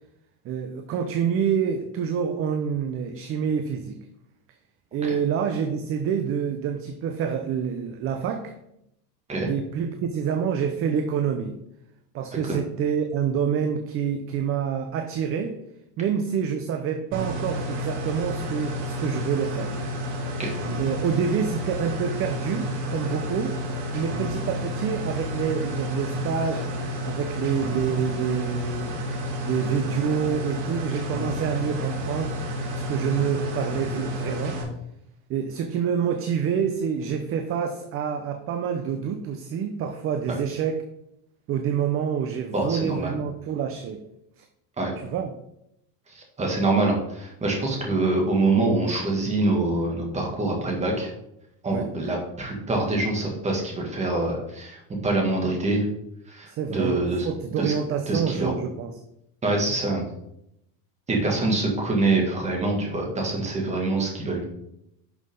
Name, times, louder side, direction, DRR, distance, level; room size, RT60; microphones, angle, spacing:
voice 1, 0.4-4.0 4.9-8.5 9.5-11.6 12.1-15.6 16.0-19.7 20.8-23.6 23.9-26.7 27.0-28.9 29.4-32.4 32.7-34.6 35.3-40.8 41.5-44.0 44.4-44.5 45.0-45.3 51.7-51.9 56.5-58.9, right 7 dB, 35° right, 7 dB, 0.7 m, -27 dB
sound 1, 17.1-34.6, equal, 65° right, 3.7 m, -30 dB
voice 2, 42.5-43.1 44.8-44.9 46.1-51.1 51.6-55.9 56.3-57.3 57.6-57.7 58.1-58.5 59.4-60.0 61.1-64.5, right 2 dB, 15° right, 0 dB, 2.3 m, -25 dB
11.0 x 6.0 x 3.9 m, 0.80 s
cardioid pair, 160°, 40 cm